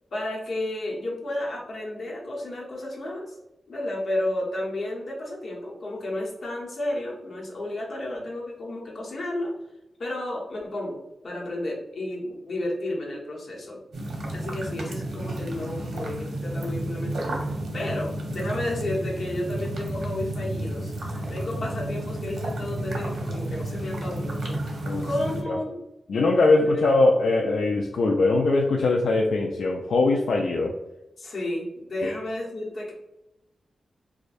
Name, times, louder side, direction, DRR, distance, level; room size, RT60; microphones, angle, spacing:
voice 1, 0.1-3.4 3.7-9.5 10.0-13.8 14.3-20.9 21.3-25.8 26.5-26.8 31.2-32.9, left 1 dB, 50° left, -2 dB, 0.9 m, -32 dB
sound 1, 13.9-25.4, right 1 dB, 80° right, 0.9 m, -31 dB
voice 2, 26.1-30.7 32.0-32.2, left 2 dB, 75° left, 0 dB, 0.3 m, -21 dB
4.8 x 2.2 x 2.5 m, 0.93 s
wide cardioid pair, 165°, 0 cm